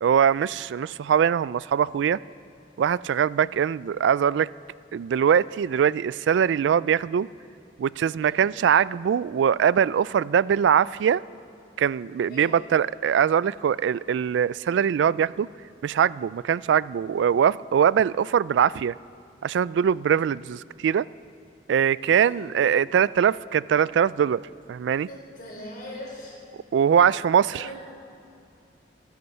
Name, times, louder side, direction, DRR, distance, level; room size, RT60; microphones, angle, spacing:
voice 1, 0.0-2.2 2.8-4.5 4.9-7.3 7.8-11.2 11.8-15.5 15.8-18.9 19.4-21.1 21.7-24.4 24.7-25.1 26.7-27.7, right 8 dB, 85° right, 20 dB, 0.3 m, -22 dB
voice 2, 25.1-26.4 27.5-27.9, equal, 55° left, -2 dB, 4.9 m, -40 dB
25.0 x 9.5 x 5.7 m, 2.6 s
head